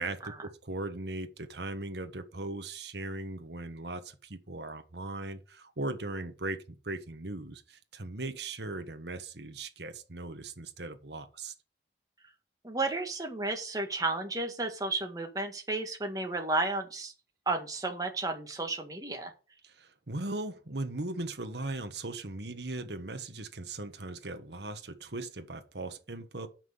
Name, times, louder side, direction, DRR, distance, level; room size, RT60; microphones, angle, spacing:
voice 1, 0.0-11.5 19.6-26.5, right 2 dB, 75° right, 1.4 m, -38 dB
voice 2, 12.6-17.1 17.5-19.3, right 2 dB, 20° right, 1.8 m, -32 dB
7.4 x 6.0 x 6.5 m
head